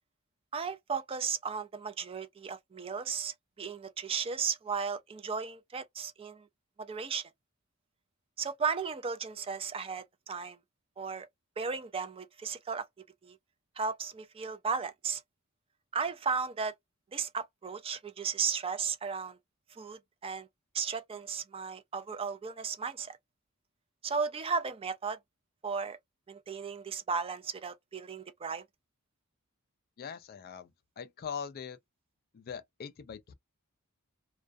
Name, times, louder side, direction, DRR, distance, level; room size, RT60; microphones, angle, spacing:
voice 1, 0.5-6.5 6.8-7.3 8.4-10.6 11.0-11.3 11.6-12.9 13.2-13.4 13.8-15.2 15.9-16.7 17.1-19.4 19.7-20.5 20.7-23.2 24.0-25.2 25.6-26.0 26.3-28.6, right 5 dB, 25° right, 0.4 m, -35 dB
voice 2, 30.0-31.8 32.3-33.3, left 7 dB, 45° left, 0.3 m, -42 dB
2.3 x 2.2 x 2.5 m
head